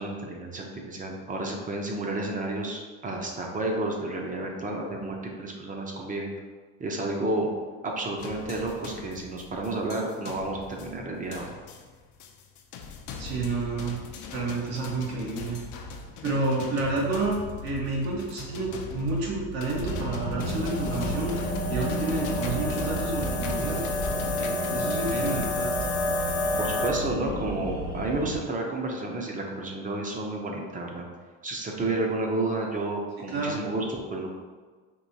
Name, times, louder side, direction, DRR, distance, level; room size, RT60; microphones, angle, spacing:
voice 1, 0.0-6.3 6.8-7.5 7.8-11.5 26.6-31.1 31.4-34.3, right 2 dB, 20° right, 1 dB, 0.6 m, -31 dB
sound 1, 8.2-25.5, left 4 dB, 55° left, 0.6 m, -40 dB
voice 2, 13.2-14.0 14.3-15.6 16.2-17.4 17.6-25.7 33.3-33.6, right 3 dB, 80° right, -4 dB, 1.4 m, -30 dB
sound 2, 19.8-28.4, equal, 60° right, 1.4 m, -32 dB
sound 3, 20.4-26.9, left 2 dB, 75° left, 1.0 m, -31 dB
4.5 x 2.9 x 2.7 m, 1.4 s
cardioid pair, 115°, 37 cm